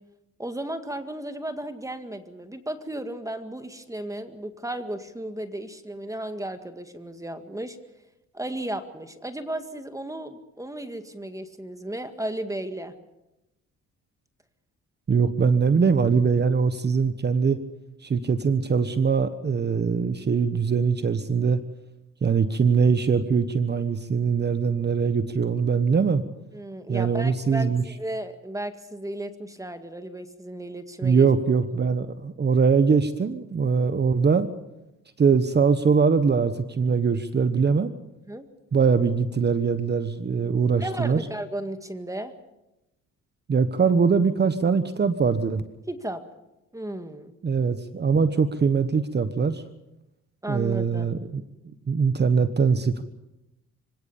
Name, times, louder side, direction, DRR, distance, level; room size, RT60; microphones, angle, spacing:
voice 1, 0.4-7.8 8.3-12.9 26.5-31.3 38.3-38.5 40.7-42.3 45.9-46.2 46.7-47.3 50.4-51.1, right 1 dB, 10° right, 8 dB, 1.9 m, -34 dB
voice 2, 15.1-17.6 18.0-21.6 22.2-26.2 26.9-27.8 31.0-34.5 35.2-37.9 38.7-41.2 43.5-45.6 47.4-49.6 50.5-51.4 51.9-53.0, right 5 dB, 35° right, 11 dB, 1.2 m, -22 dB
25.5 x 17.0 x 7.1 m, 0.93 s
cardioid pair, 90°, 30 cm